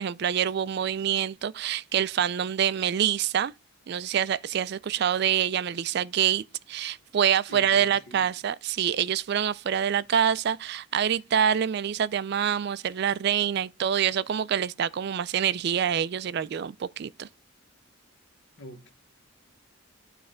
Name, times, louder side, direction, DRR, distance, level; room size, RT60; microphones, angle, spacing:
voice 1, 0.0-3.5 3.9-17.3, right 9 dB, 50° right, 0.3 m, -26 dB
voice 2, 7.5-8.3 18.6-18.9, equal, 55° left, 1.1 m, -45 dB
9.4 x 3.2 x 5.0 m
head